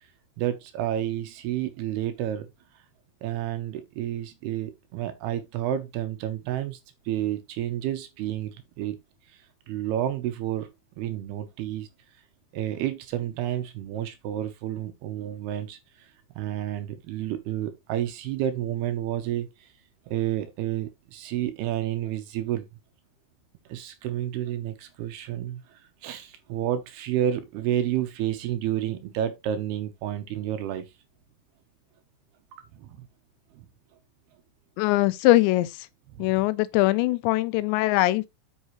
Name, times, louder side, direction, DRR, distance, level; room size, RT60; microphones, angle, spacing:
voice 1, 0.4-2.5 3.2-6.8 7.1-9.0 9.7-10.7 11.0-11.9 12.5-19.7 20.1-22.7 23.7-30.9 32.7-33.1 33.5-33.7 36.1-36.3, right 11 dB, 75° right, 2.7 m, -30 dB
voice 2, 34.8-35.8 36.2-38.3, left 17 dB, 85° left, 2.8 m, -22 dB
8.2 x 6.5 x 3.0 m
omnidirectional pair, 5.0 m